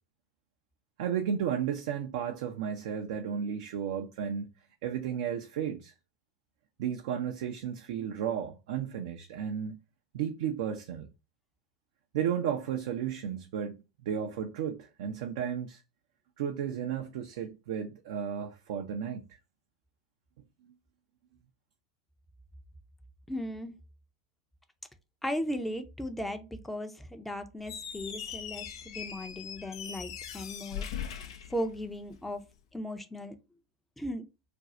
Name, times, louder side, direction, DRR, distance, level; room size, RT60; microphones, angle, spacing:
voice 1, 1.0-4.5 4.8-5.9 6.8-9.7 10.1-11.1 12.1-13.8 14.0-15.8 16.4-19.2, right 8 dB, 65° right, 0.5 m, -33 dB
voice 2, 23.3-23.7 25.2-32.4 32.7-33.4 34.0-34.2, equal, 5° left, 0.6 m, -37 dB
Squeak, 27.6-32.2, left 8 dB, 70° left, 0.5 m, -41 dB
2.5 x 2.3 x 4.0 m
hypercardioid pair, 95°, 3 cm